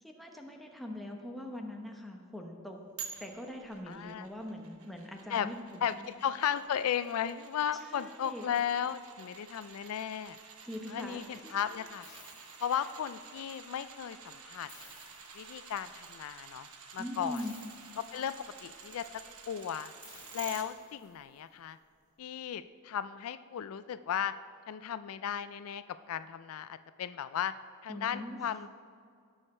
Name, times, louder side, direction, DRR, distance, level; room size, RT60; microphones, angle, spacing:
voice 1, 0.0-2.8 3.2-6.0 7.8-8.5 10.6-11.6 12.7-12.8 17.0-17.6 27.9-28.4, left 1 dB, ahead, 1 dB, 0.9 m, -42 dB
sound 1, 3.0-20.6 21.1-21.2, right 6 dB, 75° right, 1.1 m, -51 dB
voice 2, 3.9-4.3 5.3-5.5 5.8-10.4 10.9-12.1 12.6-14.7 15.3-16.7 16.9-17.4 18.0-19.0 19.5-19.9 20.3-21.8 22.2-24.3 24.7-27.5 27.8-28.7, left 9 dB, 70° left, 13 dB, 0.3 m, -35 dB
sound 2, 12.0-13.4 14.7-16.0 17.3-18.7 20.0-21.4, left 3 dB, 20° left, 2.4 m, -57 dB
17.5 x 6.4 x 4.3 m, 2.2 s
head